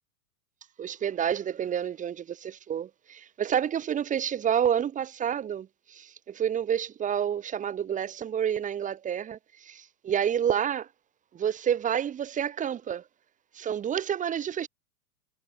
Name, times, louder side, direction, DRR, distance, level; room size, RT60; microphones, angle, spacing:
voice 1, 0.8-10.9 11.3-13.0 13.5-14.7, right 9 dB, 15° right, 1.1 m, -29 dB
hypercardioid pair, 120°, 46 cm